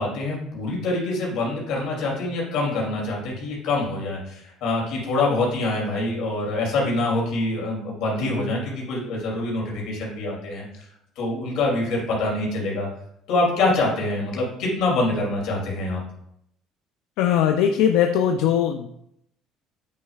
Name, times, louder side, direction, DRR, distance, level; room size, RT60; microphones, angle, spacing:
voice 1, 0.0-10.8 11.2-12.9 13.3-16.0, left 2 dB, 65° left, -2 dB, 2.8 m, -25 dB
voice 2, 17.2-18.9, left 9 dB, 85° left, 5 dB, 0.5 m, -20 dB
8.6 x 6.4 x 2.4 m, 0.74 s
cardioid pair, 160°, 0 cm